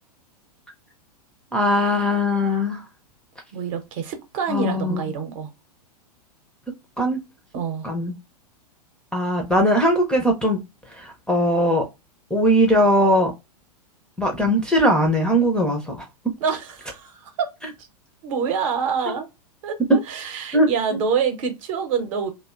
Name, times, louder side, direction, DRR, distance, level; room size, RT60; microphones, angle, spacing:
voice 1, 1.5-2.8 4.5-5.0 7.0-7.2 7.8-8.1 9.1-10.6 11.0-11.8 12.3-13.3 14.2-16.0 20.5-20.7, equal, 5° left, 0.5 m, -20 dB
voice 2, 3.5-5.5 7.5-7.9 16.4-17.5 18.2-19.3 19.6-22.3, right 6 dB, 55° right, 0.8 m, -26 dB
2.6 x 2.2 x 2.3 m
hypercardioid pair, 105°, 20 cm